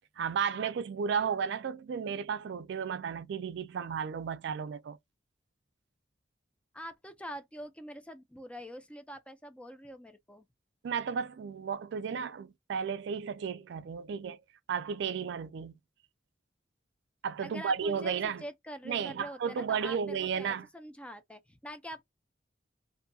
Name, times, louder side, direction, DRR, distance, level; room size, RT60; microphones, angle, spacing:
voice 1, 0.2-5.0 10.8-14.4 14.7-15.8 17.2-18.4 18.9-20.7, right 6 dB, 65° right, 0.3 m, -33 dB
voice 2, 6.7-10.4 17.4-22.0, equal, 5° left, 0.5 m, -45 dB
2.6 x 2.6 x 2.3 m
head